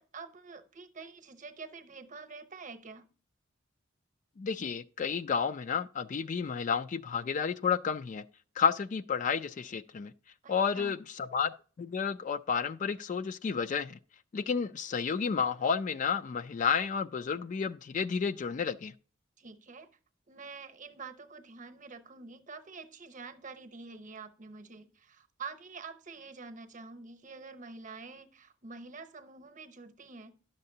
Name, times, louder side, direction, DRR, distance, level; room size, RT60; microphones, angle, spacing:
voice 1, 0.0-3.1 10.4-11.0 19.4-19.9 20.3-30.4, right 4 dB, 40° right, 0.9 m, -47 dB
voice 2, 4.4-8.2 8.6-10.1 10.5-14.0 14.3-18.9, left 6 dB, 40° left, 0.3 m, -31 dB
10.5 x 6.7 x 2.7 m
head